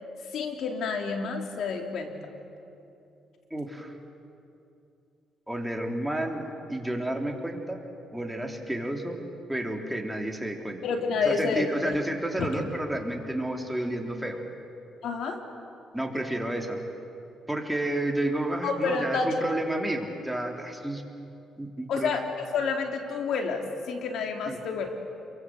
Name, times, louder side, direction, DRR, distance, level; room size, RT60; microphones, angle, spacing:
voice 1, 0.3-2.2 10.8-12.0 12.4-12.5 15.0-15.4 18.6-19.3 21.9-24.9, left 5 dB, 75° left, 4 dB, 3.4 m, -29 dB
voice 2, 3.5-3.9 5.5-7.8 8.1-9.2 9.5-10.8 11.2-14.4 15.9-16.8 17.5-21.0 21.6-22.1 24.5-24.6, right 1 dB, 5° right, 2 dB, 3.4 m, -31 dB
28.5 x 23.5 x 7.9 m, 2.7 s
cardioid pair, 90°, 0 cm